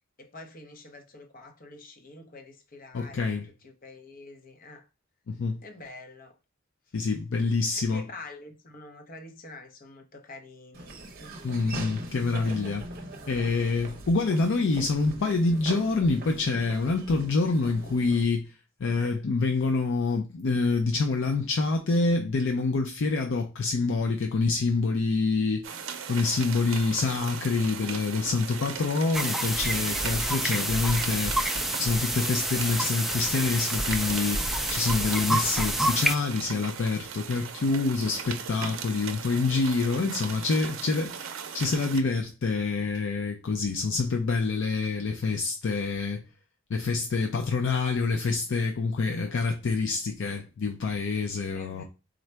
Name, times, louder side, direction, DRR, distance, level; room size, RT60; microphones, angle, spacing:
voice 1, 0.2-4.9 5.6-6.4 7.7-11.5 51.5-51.8, left 2 dB, 45° left, 0.8 m, -47 dB
voice 2, 2.9-3.5 5.4-5.6 6.9-8.0 11.4-12.9 13.3-18.5 18.8-25.7 26.1-31.5 31.8-46.2 46.7-51.8, left 3 dB, 65° left, 0.5 m, -26 dB
Laughter / Walk footsteps, 10.7-18.2, right 2 dB, 50° right, 0.7 m, -41 dB
sound 1, 25.6-42.0, right 7 dB, 85° right, 0.5 m, -38 dB
sound 2, 29.1-36.2, right 1 dB, ahead, 0.3 m, -28 dB
3.8 x 2.1 x 4.4 m
head